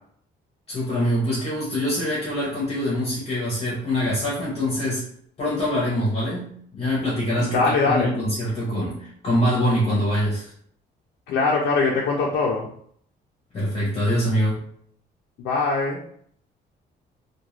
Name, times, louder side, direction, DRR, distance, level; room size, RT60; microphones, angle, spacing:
voice 1, 0.7-5.0 5.4-10.5 13.5-14.6, equal, 30° left, -7 dB, 0.7 m, -24 dB
voice 2, 7.4-8.2 11.3-12.7 15.4-16.0, left 3 dB, 65° left, -2 dB, 0.4 m, -22 dB
2.3 x 2.2 x 3.0 m, 0.64 s
cardioid pair, 180°, 19 cm